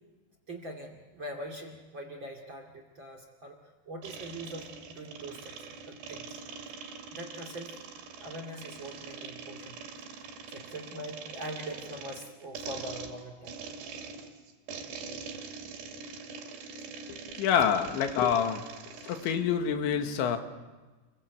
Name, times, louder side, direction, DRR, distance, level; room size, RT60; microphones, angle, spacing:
voice 1, 0.5-3.6 3.9-6.4 7.1-7.7 8.2-9.8 10.1-13.5, right 1 dB, 35° right, 4 dB, 2.3 m, -42 dB
sound 1, 4.0-19.4, right 5 dB, 65° right, 4.4 m, -44 dB
voice 2, 17.1-18.7 19.0-20.4, left 8 dB, 85° left, 6 dB, 3.9 m, -27 dB
29.0 x 21.5 x 8.1 m, 1.3 s
omnidirectional pair, 5.2 m